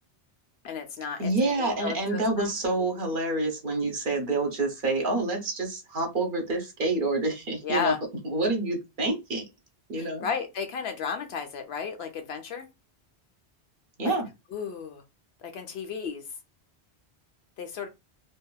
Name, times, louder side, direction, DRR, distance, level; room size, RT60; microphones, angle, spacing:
voice 1, 0.6-2.6 7.6-8.0 10.0-12.7 14.0-14.1 14.5-15.0 15.4-16.2 17.6-17.9, left 6 dB, 70° left, 0.9 m, -33 dB
voice 2, 1.2-7.9 8.2-9.4 9.9-10.3 14.0-14.3, right 2 dB, 55° right, 0.8 m, -27 dB
2.7 x 2.3 x 2.2 m
omnidirectional pair, 1.1 m